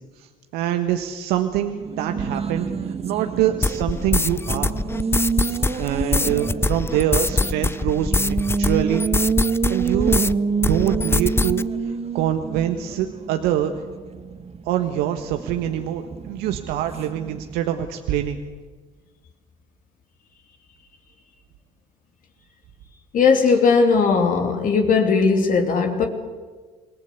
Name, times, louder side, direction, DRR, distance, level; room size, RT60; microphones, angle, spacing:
voice 1, 0.2-4.8 5.4-9.1 9.7-10.3 10.7-13.7 14.6-18.4 23.4-23.6, right 11 dB, 70° right, 1.4 m, -25 dB
Race car auto racing, 1.6-17.9, right 5 dB, 35° right, 1.7 m, -28 dB
sound 1, 3.6-10.4 10.6-11.6, left 3 dB, 15° left, 0.7 m, -23 dB
voice 2, 23.1-26.1, left 5 dB, 50° left, 3.0 m, -18 dB
27.0 x 18.5 x 8.4 m
hypercardioid pair, 60°, 17 cm